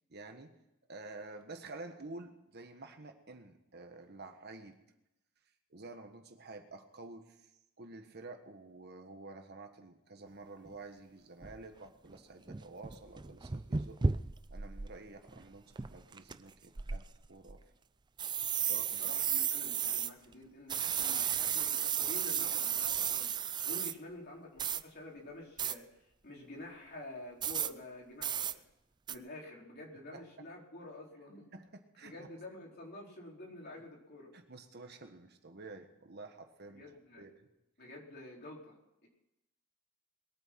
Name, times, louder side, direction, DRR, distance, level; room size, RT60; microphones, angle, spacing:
voice 1, 0.1-0.6 0.9-4.8 5.7-7.5 7.8-14.0 14.5-17.6 18.7-19.1 30.1-30.4 31.5-32.3 34.3-36.8 37.2-37.5, right 3 dB, 50° right, 5 dB, 1.5 m, -50 dB
sound 1, 10.7-10.8 11.4-11.6 12.1-12.2 12.5-14.9 15.3-15.4 15.8-16.3 16.8-17.5 18.2-20.1 20.7-23.9 24.6-24.8 25.6-25.7 27.4-27.7 28.2-28.5 29.1-29.2, right 7 dB, 20° right, 0.4 m, -33 dB
voice 2, 19.0-23.3 23.6-25.8 26.2-28.6 29.1-31.5 32.0-34.3 36.7-37.3 37.8-38.7 39.0-39.1, left 1 dB, 45° left, -2 dB, 4.2 m, -49 dB
21.5 x 9.1 x 6.0 m, 0.89 s
head